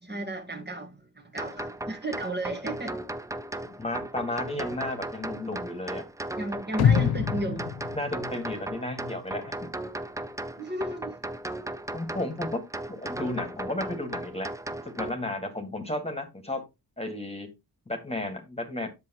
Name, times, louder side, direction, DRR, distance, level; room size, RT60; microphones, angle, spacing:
voice 1, 0.0-3.0 6.4-7.7 10.6-11.2, right 1 dB, 25° right, 1.7 m, -34 dB
sound 1, 1.4-15.1, right 2 dB, 10° right, 0.5 m, -36 dB
voice 2, 3.6-6.0 8.0-9.6 11.9-12.6 12.9-14.5 15.0-16.6 17.0-17.5 17.9-18.9, left 1 dB, 15° left, 1.8 m, -33 dB
sound 2, 6.8-8.9 9.3-9.4, left 8 dB, 75° left, 0.5 m, -25 dB
7.7 x 6.7 x 3.0 m
wide cardioid pair, 90°, 38 cm